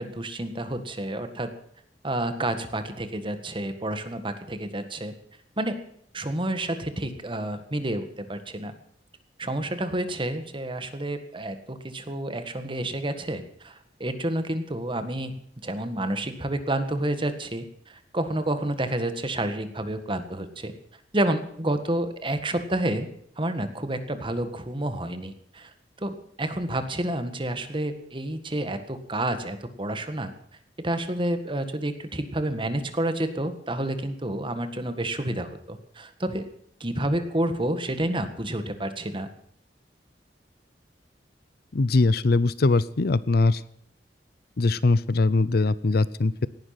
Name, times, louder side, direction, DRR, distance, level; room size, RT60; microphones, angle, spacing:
voice 1, 0.0-1.5 2.0-5.1 5.6-5.8 6.1-8.7 9.4-15.3 15.6-20.7 21.1-23.1 23.4-25.7 26.0-30.3 30.8-36.4 36.8-39.3, right 1 dB, 30° right, 9 dB, 1.6 m, -29 dB
voice 2, 41.7-43.6 44.6-46.5, left 3 dB, 60° left, 18 dB, 0.6 m, -21 dB
18.0 x 11.5 x 5.9 m, 0.68 s
head